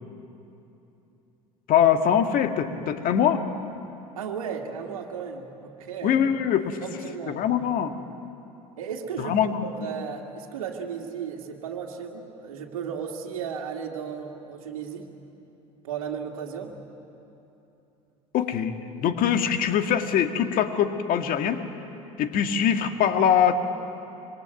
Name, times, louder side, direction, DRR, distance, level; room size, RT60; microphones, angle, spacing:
voice 1, 1.7-3.4 6.0-6.8 7.3-7.9 9.2-9.7 18.3-21.6 22.2-23.5, left 8 dB, 55° left, 7 dB, 1.9 m, -23 dB
voice 2, 4.1-6.2 6.8-7.4 8.8-15.1 15.8-16.7, right 7 dB, 80° right, 0 dB, 2.1 m, -35 dB
26.0 x 22.0 x 9.2 m, 2.9 s
hypercardioid pair, 70°, 18 cm